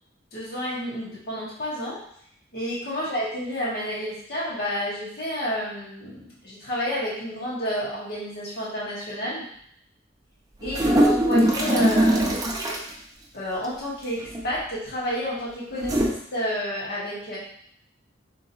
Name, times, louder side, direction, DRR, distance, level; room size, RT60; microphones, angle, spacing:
voice 1, 0.3-2.0 2.5-9.5 10.6-12.3 13.3-17.4, equal, 55° left, -7 dB, 1.7 m, -30 dB
sound 1, 10.6-12.9 14.2-14.6 15.8-16.1, right 1 dB, 20° right, 0.5 m, -21 dB
3.8 x 2.9 x 4.1 m, 0.67 s
head